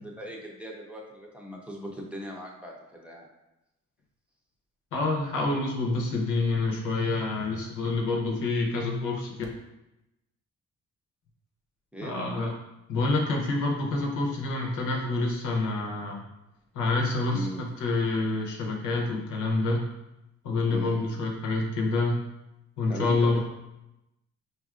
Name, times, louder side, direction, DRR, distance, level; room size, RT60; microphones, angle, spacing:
voice 1, 0.0-3.3 11.9-12.1 17.3-17.7 20.7-21.1 22.9-23.4, equal, 5° right, -2 dB, 0.7 m, -39 dB
voice 2, 4.9-9.4 12.0-12.5 12.9-16.2 16.7-19.8 20.4-22.1 22.8-23.4, left 3 dB, 85° left, 0 dB, 0.9 m, -27 dB
4.5 x 2.6 x 2.4 m, 0.91 s
cardioid pair, 90°, 30 cm